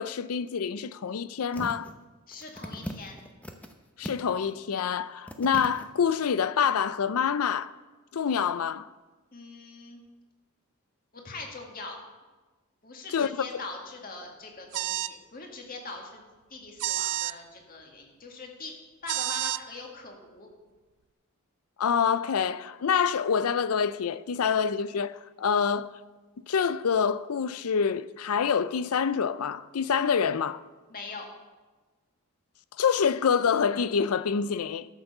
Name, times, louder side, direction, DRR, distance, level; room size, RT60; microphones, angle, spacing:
voice 1, 0.0-1.9 4.0-7.7 8.1-8.9 13.1-13.6 21.8-26.0 26.5-30.6 32.8-34.9, left 6 dB, 80° left, 0.5 m, -26 dB
sound 1, 1.5-1.9 2.3-3.7 4.0-4.5 4.9-5.0 5.3-5.8 6.4-6.5, equal, 5° left, 0.7 m, -39 dB
voice 2, 2.3-3.2 9.3-10.0 11.1-12.0 12.8-16.2 16.5-18.7 19.0-20.5 30.9-31.3, left 3 dB, 40° left, 2.0 m, -42 dB
sound 2, 14.7-15.2 16.8-17.4 19.1-19.6, right 15 dB, 80° right, 0.4 m, -29 dB
12.5 x 7.2 x 6.6 m
head